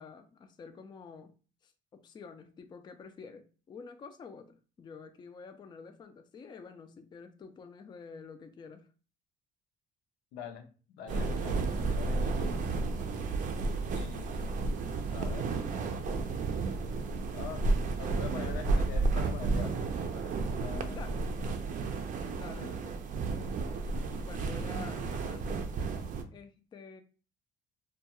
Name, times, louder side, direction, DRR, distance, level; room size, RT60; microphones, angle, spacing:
voice 1, 0.0-1.3 1.6-8.9 20.9-21.3 22.3-23.0 24.2-25.6 26.3-27.0, left 5 dB, 25° left, 0.3 m, -49 dB
voice 2, 10.3-10.6 10.9-12.7 13.9-14.6 15.1-15.5 17.3-17.6 18.0-19.8 20.1-21.0 22.6-22.7, left 7 dB, 85° left, 0.6 m, -44 dB
sound 1, 11.1-26.2, right 3 dB, 50° right, 0.4 m, -32 dB
2.3 x 2.2 x 2.9 m
cardioid pair, 110°, 17 cm